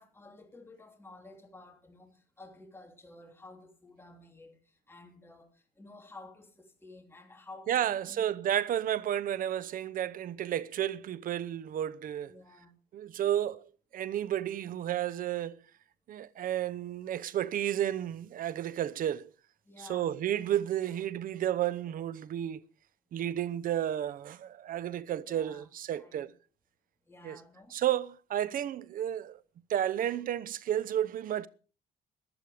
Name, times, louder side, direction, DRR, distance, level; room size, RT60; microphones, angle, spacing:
voice 1, 0.0-8.2 12.3-12.7 19.6-20.2 25.1-25.7 26.0-26.3 27.1-27.8, left 2 dB, 15° left, 3.0 m, -53 dB
voice 2, 7.7-12.4 12.9-13.6 13.9-15.6 16.1-19.3 19.9-22.6 23.1-26.3 27.2-27.4 27.7-29.4 29.7-31.5, right 11 dB, 55° right, 0.8 m, -32 dB
15.0 x 11.0 x 5.0 m
cardioid pair, 110°, 17 cm